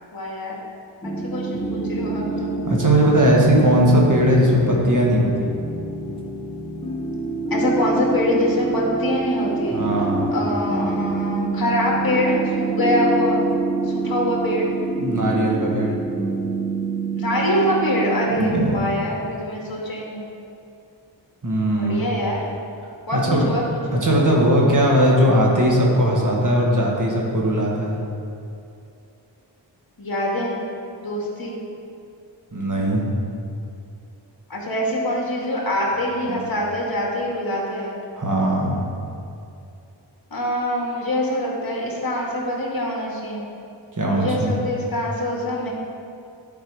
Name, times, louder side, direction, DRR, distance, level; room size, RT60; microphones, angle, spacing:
voice 1, 0.1-0.5 1.0-2.5 7.5-9.8 10.3-13.5 13.8-14.7 17.2-20.3 21.7-22.4 23.1-24.0 30.0-30.6 31.0-31.6 34.5-38.0 40.3-43.5 44.1-45.7, left 1 dB, 50° left, -3 dB, 1.9 m, -24 dB
sound 1, 1.0-18.4, right 3 dB, 10° left, 0.9 m, -26 dB
voice 2, 2.6-5.5 9.7-10.3 15.0-15.9 18.3-18.8 21.4-22.0 23.1-23.5 23.9-28.0 32.5-33.0 36.3-36.4 38.1-38.8 44.0-44.5, equal, 40° right, -3 dB, 1.5 m, -19 dB
11.0 x 4.5 x 4.8 m, 2.6 s
wide cardioid pair, 55°, 45 cm